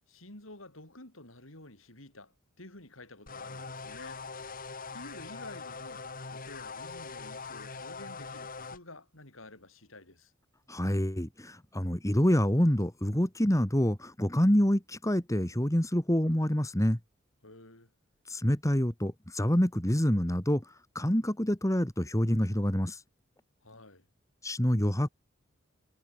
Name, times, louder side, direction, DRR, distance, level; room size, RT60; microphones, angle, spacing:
voice 1, 0.1-10.3 17.4-17.9 23.6-24.1, left 2 dB, 80° left, 7.9 m, -51 dB
sound 1, 3.3-8.8, left 4 dB, 45° left, 4.4 m, -42 dB
voice 2, 10.7-17.0 18.3-20.6 20.9-23.0 24.4-25.1, equal, 15° left, 2.3 m, -27 dB
head